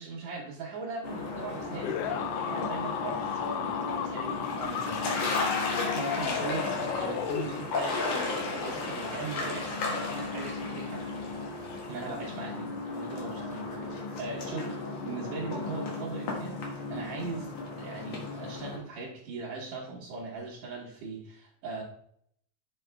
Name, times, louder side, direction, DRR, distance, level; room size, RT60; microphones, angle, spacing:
voice 1, 0.0-5.5 5.8-11.1 11.9-14.8 15.0-17.5 17.8-21.8, right 4 dB, 65° right, -5 dB, 2.6 m, -39 dB
sound 1, 1.0-18.8, left 3 dB, 60° left, 2.4 m, -34 dB
sound 2, 1.8-7.9, left 9 dB, 85° left, 2.2 m, -34 dB
7.6 x 5.2 x 3.4 m, 0.67 s
omnidirectional pair, 3.5 m